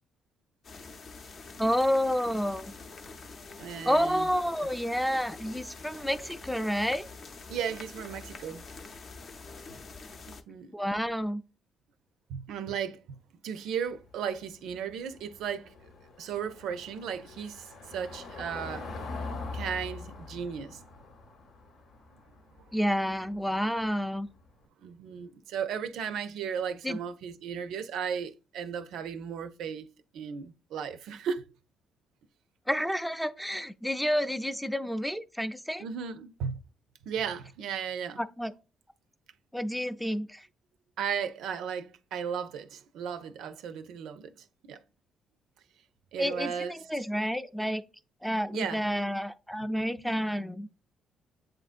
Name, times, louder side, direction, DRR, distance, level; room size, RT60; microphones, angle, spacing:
sound 1, 0.6-10.4, left 4 dB, 50° left, 0.6 m, -46 dB
voice 1, 1.6-2.7 3.8-7.0 10.7-11.4 22.7-24.3 26.8-27.0 32.7-35.9 38.2-38.5 39.5-40.4 46.2-47.8 48.2-50.8, equal, ahead, 0.4 m, -29 dB
voice 2, 3.6-4.3 7.5-8.6 10.3-10.7 12.3-13.0 13.4-15.7 16.2-18.9 19.5-20.8 24.8-29.9 30.1-31.5 35.8-36.6 37.1-38.2 41.0-44.3 44.6-44.8 46.1-46.8 48.5-48.8, right 7 dB, 85° right, 0.4 m, -35 dB
Car passing by / Engine, 13.9-24.5, left 3 dB, 80° left, 0.9 m, -43 dB
7.6 x 2.6 x 2.4 m
cardioid pair, 90°, 0 cm